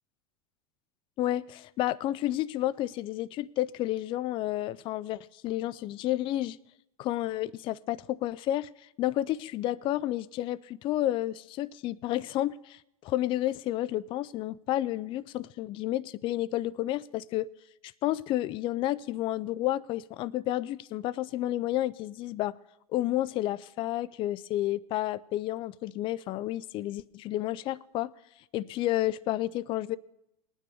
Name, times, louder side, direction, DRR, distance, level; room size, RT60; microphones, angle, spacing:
voice 1, 1.2-6.6 7.0-8.7 9.0-17.5 18.0-22.6 22.9-28.1 28.5-30.0, left 14 dB, 25° left, 17 dB, 0.3 m, -31 dB
21.0 x 9.4 x 3.3 m, 0.86 s
figure-of-eight pair, 85°, 19 cm